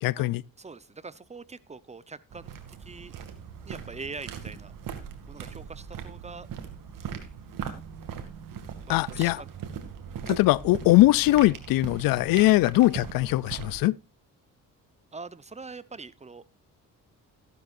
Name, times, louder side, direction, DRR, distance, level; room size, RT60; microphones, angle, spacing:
voice 1, 0.0-0.4 8.9-9.4 10.3-14.0, left 18 dB, 90° left, 0.5 m, -21 dB
voice 2, 0.6-3.1 3.6-4.7 5.3-6.5 8.9-9.5 12.3-12.5 15.1-16.4, right 4 dB, 20° right, 0.8 m, -43 dB
sound 1, 2.3-13.8, right 7 dB, 75° right, 2.4 m, -40 dB
15.0 x 11.5 x 2.6 m
cardioid pair, 95°, 33 cm